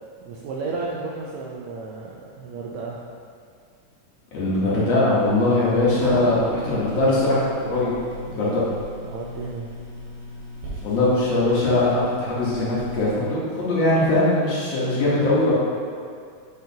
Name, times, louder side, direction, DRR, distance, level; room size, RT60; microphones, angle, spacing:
voice 1, 0.2-3.0 9.0-9.7, right 3 dB, 80° right, -4 dB, 1.6 m, -33 dB
voice 2, 4.3-7.9 8.2-8.6 10.8-15.5, left 2 dB, 60° left, -8 dB, 2.0 m, -21 dB
sound 1, 5.2-13.2, equal, 65° right, 3.1 m, -37 dB
8.9 x 4.8 x 2.8 m, 2.2 s
omnidirectional pair, 3.7 m